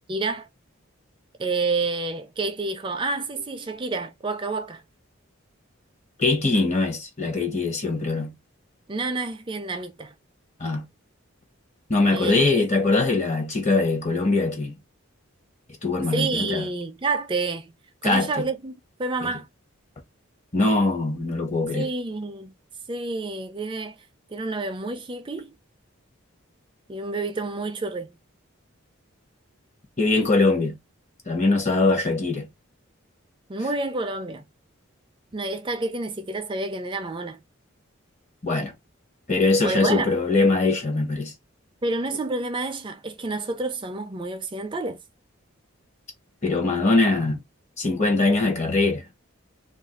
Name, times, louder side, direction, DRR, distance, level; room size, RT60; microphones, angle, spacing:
voice 1, 0.1-0.5 1.4-4.8 8.9-10.1 12.1-12.6 16.1-17.7 18.0-19.5 21.7-22.5 22.9-24.0 24.3-25.5 26.9-28.2 33.5-34.4 35.3-37.4 39.6-40.1 41.8-45.0, right 3 dB, 25° right, 0.4 m, -29 dB
voice 2, 6.2-8.4 10.6-10.9 11.9-14.8 15.8-16.7 18.0-18.5 19.2-19.3 20.5-21.9 30.0-30.8 31.3-32.5 38.4-38.7 39.3-41.3 46.4-47.4 47.8-49.0, left 3 dB, 35° left, 0.8 m, -22 dB
2.5 x 2.3 x 3.7 m
head